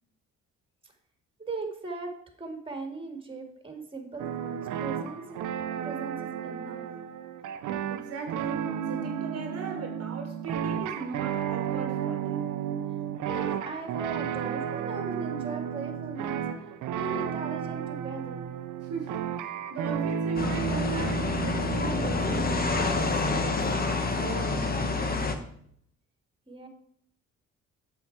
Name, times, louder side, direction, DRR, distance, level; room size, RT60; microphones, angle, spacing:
voice 1, 1.4-2.1 2.4-5.4 5.8-6.8 13.3-16.4 16.9-18.5 26.5-26.7, right 3 dB, 20° right, 2.2 m, -38 dB
sound 1, 4.2-23.5, right 8 dB, 80° right, 0.7 m, -33 dB
voice 2, 7.9-12.6 18.8-23.7 24.1-25.0, right 5 dB, 50° right, 1.4 m, -39 dB
sound 2, 20.4-25.4, left 3 dB, 30° left, 1.2 m, -28 dB
8.2 x 6.8 x 4.6 m
cardioid pair, 90°, 30 cm